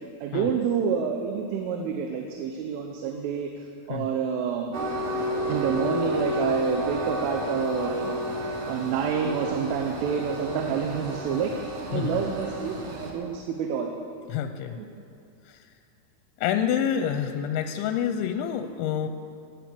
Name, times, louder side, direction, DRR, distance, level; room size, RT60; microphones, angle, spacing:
voice 1, 0.2-4.8 5.5-13.9 14.8-14.9, right 7 dB, 85° right, 3 dB, 3.4 m, -28 dB
Train, 4.7-13.1, equal, 60° right, 1.6 m, -31 dB
voice 2, 14.3-14.8 15.5-15.7 16.4-19.1, left 9 dB, 85° left, 8 dB, 2.9 m, -28 dB
14.5 x 9.7 x 8.3 m, 2.5 s
omnidirectional pair, 5.5 m